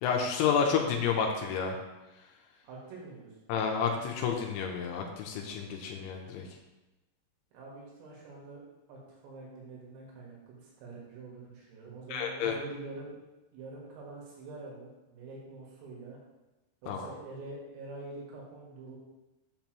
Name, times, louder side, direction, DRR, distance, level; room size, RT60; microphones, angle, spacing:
voice 1, 0.0-1.8 3.5-6.5 12.1-12.6 16.9-17.1, left 6 dB, 80° left, 1 dB, 2.8 m, -30 dB
voice 2, 2.6-3.3 7.5-8.6 8.9-13.1 13.5-16.2 16.8-19.0, right 3 dB, 80° right, -4 dB, 4.2 m, -45 dB
8.1 x 7.1 x 3.0 m, 1.0 s
omnidirectional pair, 5.9 m